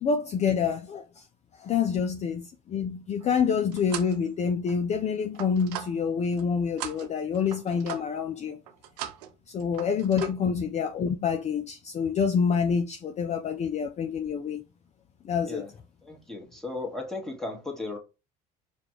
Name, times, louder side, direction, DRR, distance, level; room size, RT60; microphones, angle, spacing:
voice 1, 0.0-1.0 1.6-8.6 9.5-14.6 15.2-15.6, left 6 dB, 35° left, 0.4 m, -27 dB
sound 1, 3.2-4.2 4.7-6.4 6.8-8.2 8.7-9.3 9.6-10.3, right 11 dB, 85° right, 0.5 m, -40 dB
voice 2, 16.0-18.0, left 2 dB, ahead, 1.4 m, -35 dB
4.9 x 2.3 x 3.0 m
hypercardioid pair, 70°, 20 cm